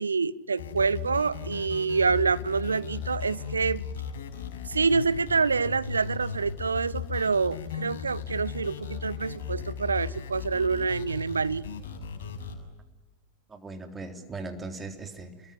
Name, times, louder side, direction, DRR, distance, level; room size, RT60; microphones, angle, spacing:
voice 1, 0.0-3.8 4.7-11.6, right 4 dB, 75° right, 19 dB, 0.9 m, -27 dB
sound 1, 0.6-12.6, left 7 dB, 60° left, 6.9 m, -37 dB
voice 2, 13.5-15.5, right 3 dB, 15° right, 5 dB, 3.8 m, -39 dB
29.0 x 22.0 x 9.5 m, 1.0 s
figure-of-eight pair, 90°, 0 cm